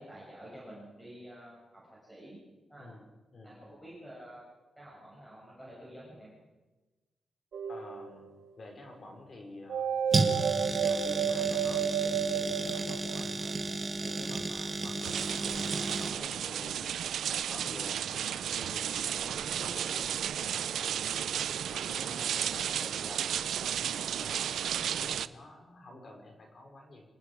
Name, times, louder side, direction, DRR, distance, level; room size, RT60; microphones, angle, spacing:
voice 1, 0.0-2.4 2.7-2.9 3.4-4.4 4.8-6.4, equal, ahead, -7 dB, 7.1 m, -49 dB
voice 2, 3.3-3.7 7.7-10.0 10.8-13.5 14.0-17.0 17.2-27.0, left 2 dB, 35° left, 1 dB, 5.5 m, -49 dB
sound 1, 7.5-8.3 9.7-13.5, right 8 dB, 65° right, 1.2 m, -31 dB
sound 2, 10.1-16.1, right 3 dB, 30° right, 1.8 m, -33 dB
sound 3, 15.0-25.3, right 9 dB, 80° right, 0.6 m, -33 dB
26.0 x 20.5 x 5.0 m, 1.2 s
wide cardioid pair, 175°, 0 cm